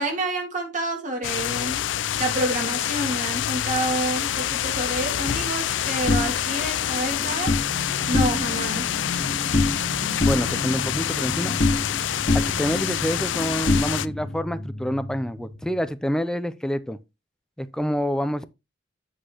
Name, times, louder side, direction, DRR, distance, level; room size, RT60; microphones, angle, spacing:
voice 1, 0.0-1.8 2.2-8.9, right 1 dB, 45° right, 2.4 m, -28 dB
sound 1, 1.2-14.1, left 11 dB, 75° left, 0.4 m, -27 dB
sound 2, 6.1-7.7 8.0-8.7 9.0-9.9 10.2-12.0 12.3-14.4, left 2 dB, 40° left, 1.1 m, -26 dB
sound 3, 7.5-15.9, left 1 dB, 90° right, 2.8 m, -35 dB
voice 2, 10.2-11.6 12.3-17.0 17.6-18.5, equal, 5° left, 0.5 m, -27 dB
8.3 x 7.7 x 3.0 m
head